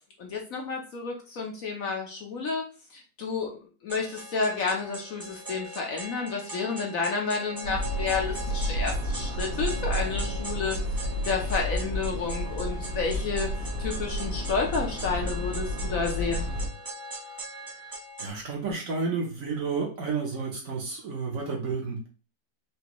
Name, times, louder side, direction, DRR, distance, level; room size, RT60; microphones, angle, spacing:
voice 1, 0.2-2.6 2.9-10.8 11.3-13.5 13.8-16.4, left 4 dB, 60° left, 0 dB, 1.1 m, -30 dB
sound 1, 3.9-18.3, right 1 dB, 35° right, 0.3 m, -41 dB
sound 2, 7.6-16.7, equal, 75° right, 2.1 m, -31 dB
voice 2, 16.9-22.1, right 4 dB, 55° right, -1 dB, 1.2 m, -32 dB
5.1 x 2.7 x 3.0 m, 0.35 s
omnidirectional pair, 1.9 m